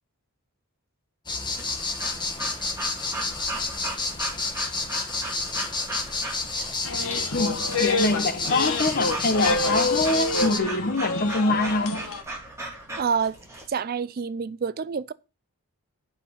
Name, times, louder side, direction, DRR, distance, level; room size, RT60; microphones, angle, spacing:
sound 1, 1.3-10.6, left 3 dB, 20° left, 1.4 m, -30 dB
Breathing / Dog, 1.5-13.7, right 2 dB, 15° right, 2.9 m, -37 dB
sound 2, 6.8-12.2, left 3 dB, 70° left, 1.4 m, -28 dB
voice 1, 7.3-12.0, left 2 dB, 40° left, 0.9 m, -24 dB
voice 2, 13.0-13.4 13.7-15.1, right 6 dB, 40° right, 0.4 m, -27 dB
8.5 x 5.7 x 6.7 m
head